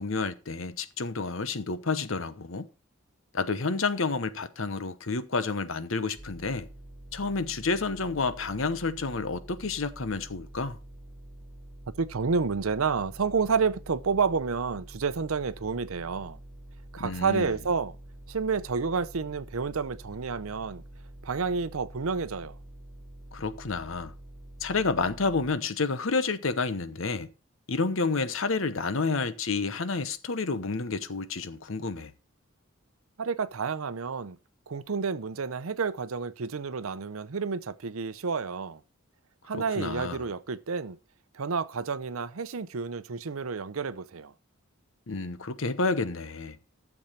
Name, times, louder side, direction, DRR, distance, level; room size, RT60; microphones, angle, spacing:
voice 1, 0.0-2.7 3.3-6.7 7.1-10.8 17.0-17.5 23.3-24.1 24.6-27.3 27.7-32.1 39.5-40.3 45.1-46.6, left 4 dB, 70° left, 1.0 m, -30 dB
sound 1, 6.2-25.5, right 1 dB, 15° right, 6.2 m, -47 dB
voice 2, 12.0-16.4 16.9-18.0 18.3-20.8 21.2-22.6 33.2-34.4 34.7-38.8 39.4-41.0 41.3-44.3, right 5 dB, 80° right, 0.7 m, -30 dB
12.0 x 7.2 x 4.2 m
head